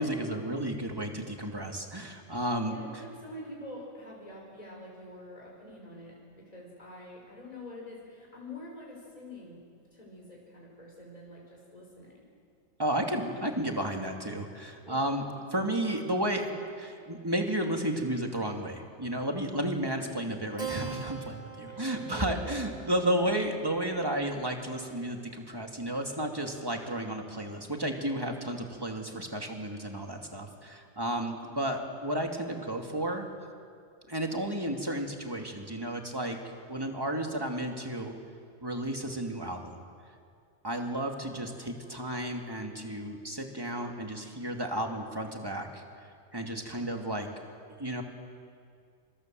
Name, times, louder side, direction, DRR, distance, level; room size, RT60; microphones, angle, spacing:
voice 1, 0.0-2.7 12.8-33.2 34.1-36.4 36.7-38.1 38.6-39.8 40.6-45.8 46.3-47.3 47.8-48.0, right 1 dB, 20° right, 3 dB, 2.5 m, -32 dB
voice 2, 2.7-9.7 9.9-12.3 14.8-15.3 21.7-22.7, left 1 dB, 30° left, -2 dB, 5.1 m, -46 dB
Keyboard (musical), 20.6-25.5, right 7 dB, 35° right, 1.6 m, -43 dB
26.5 x 25.5 x 7.7 m, 2.3 s
omnidirectional pair, 1.3 m